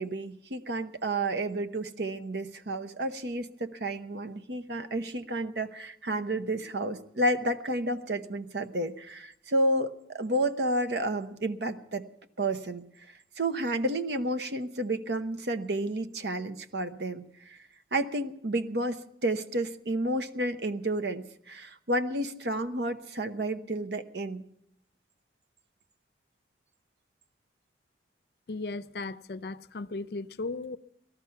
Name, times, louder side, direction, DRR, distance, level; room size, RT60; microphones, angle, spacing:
voice 1, 0.0-12.1 12.4-12.8 13.4-17.6 17.9-24.4, right 1 dB, 70° right, 0.9 m, -31 dB
voice 2, 28.5-30.8, left 3 dB, 60° left, 0.5 m, -36 dB
18.5 x 13.5 x 5.7 m
head